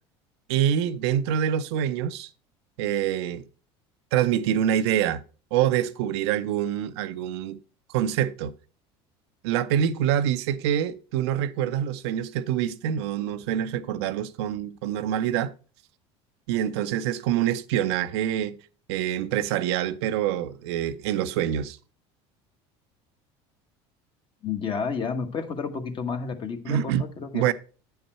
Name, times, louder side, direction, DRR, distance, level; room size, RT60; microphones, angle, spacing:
voice 1, 0.5-2.3 2.8-3.4 4.1-5.2 5.5-7.6 7.9-8.5 9.4-15.5 16.5-18.6 18.9-21.8 26.7-27.0 27.3-27.5, right 10 dB, 80° right, 0.5 m, -25 dB
voice 2, 24.4-27.5, left 5 dB, 40° left, 1.3 m, -31 dB
8.7 x 5.6 x 4.3 m
supercardioid pair, 100°, 13 cm